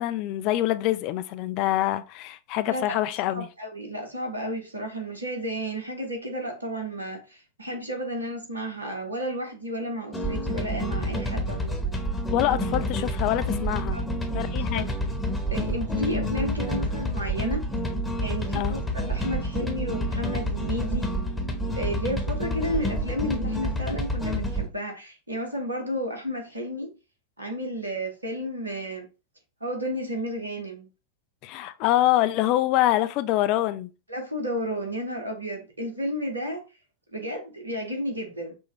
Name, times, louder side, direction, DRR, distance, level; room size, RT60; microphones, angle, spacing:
voice 1, 0.0-3.5 12.3-14.0 14.3-14.9 18.5-18.7 31.4-33.9, left 14 dB, 40° left, 0.4 m, -25 dB
voice 2, 3.3-12.0 13.9-14.0 14.7-14.8 15.5-17.6 18.1-21.1 21.7-26.9 27.4-29.1 29.6-30.9 34.1-36.6 37.1-38.5, equal, 80° right, 1.0 m, -32 dB
sound 1, 10.1-24.7, equal, 10° left, 1.0 m, -28 dB
6.0 x 2.3 x 3.1 m
figure-of-eight pair, 90°, 0 cm